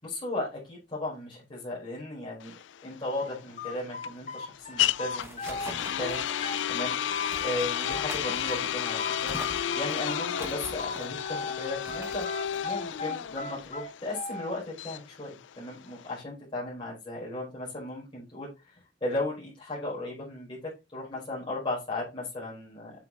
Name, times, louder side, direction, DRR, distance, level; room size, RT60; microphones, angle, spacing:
voice 1, 0.0-2.5 2.8-6.2 6.7-7.0 7.4-9.3 9.7-12.3 12.6-18.7 19.0-22.9, left 2 dB, 30° left, -6 dB, 4.8 m, -36 dB
sound 1, 2.4-16.2, left 10 dB, 85° left, 0.4 m, -32 dB
sound 2, 3.2-5.7 6.0-8.6 9.0-11.6 11.9-14.5, left 3 dB, 45° left, 1.4 m, -37 dB
sound 3, 4.6-13.9, right 1 dB, 15° right, 1.6 m, -45 dB
7.7 x 6.0 x 4.1 m, 0.25 s
head